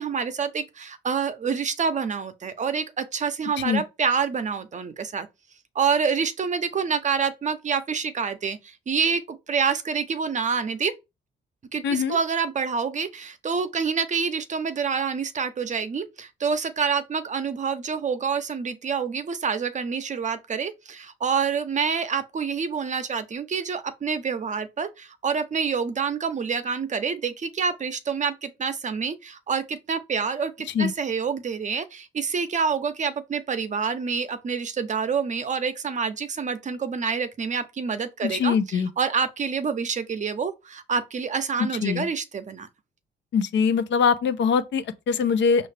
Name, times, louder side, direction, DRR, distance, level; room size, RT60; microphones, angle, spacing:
voice 1, 0.0-5.3 5.7-10.9 11.7-42.7, right 6 dB, 40° right, 0.6 m, -27 dB
voice 2, 11.8-12.2 30.7-30.9 38.2-38.9 41.8-42.1 43.3-45.7, left 6 dB, 65° left, 0.6 m, -22 dB
5.5 x 2.5 x 3.3 m
cardioid pair, 90°, 20 cm